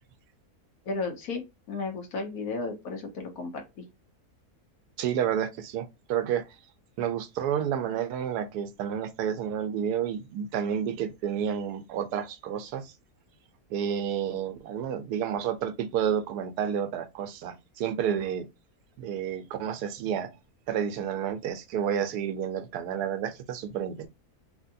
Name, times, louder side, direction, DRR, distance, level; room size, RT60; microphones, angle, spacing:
voice 1, 0.9-3.8, left 3 dB, 70° left, 1.4 m, -34 dB
voice 2, 5.0-6.6 7.0-12.9 13.7-18.5 19.0-20.4 20.7-24.1, right 8 dB, 90° right, 1.2 m, -30 dB
3.3 x 2.8 x 2.6 m
omnidirectional pair, 1.7 m